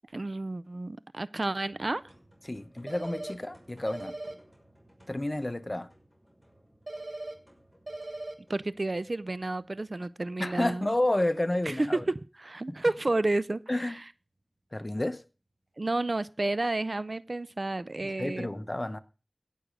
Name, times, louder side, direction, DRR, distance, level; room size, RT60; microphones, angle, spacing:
voice 1, 0.1-2.0 8.5-10.9 11.7-14.0 15.8-18.5, right 2 dB, 60° right, 0.5 m, -31 dB
sound 1, 1.6-17.8, equal, ahead, 5.9 m, -61 dB
voice 2, 2.4-4.2 5.1-5.9 10.4-12.0 12.7-12.8 13.7-14.0 14.7-15.2 18.0-19.0, left 1 dB, 35° left, 1.0 m, -30 dB
sound 2, 2.9-3.3 3.9-4.3 6.9-7.3 7.9-8.3, right 2 dB, 85° right, 1.5 m, -38 dB
17.0 x 6.4 x 5.1 m
wide cardioid pair, 45°, 0 cm